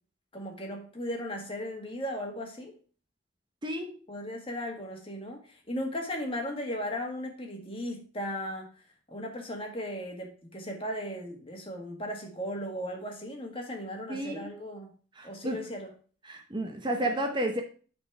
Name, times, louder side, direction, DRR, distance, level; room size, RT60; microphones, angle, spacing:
voice 1, 0.3-2.8 4.1-8.7 9.1-14.9 15.2-15.9, equal, 25° left, 1.8 m, -36 dB
voice 2, 3.6-3.9 14.1-14.5 15.2-15.7 16.3-17.6, right 1 dB, 25° right, 0.9 m, -31 dB
9.8 x 4.4 x 4.6 m
head